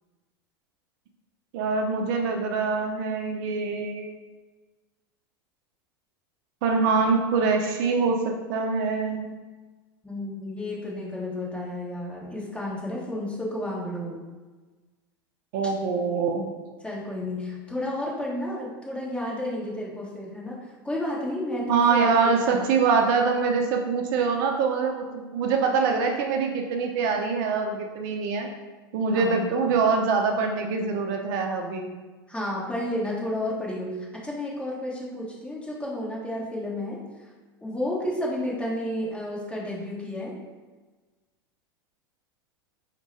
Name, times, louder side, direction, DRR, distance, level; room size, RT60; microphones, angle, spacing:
voice 1, 1.5-4.2 6.6-9.2 15.5-16.5 21.7-28.5 28.9-31.9, right 5 dB, 60° right, 3 dB, 0.5 m, -24 dB
voice 2, 10.0-14.2 16.8-20.6 20.8-22.7 29.1-29.5 32.3-37.0 37.6-40.4, left 1 dB, 10° left, -5 dB, 1.3 m, -31 dB
4.6 x 2.1 x 4.0 m, 1.3 s
hypercardioid pair, 90°, 12 cm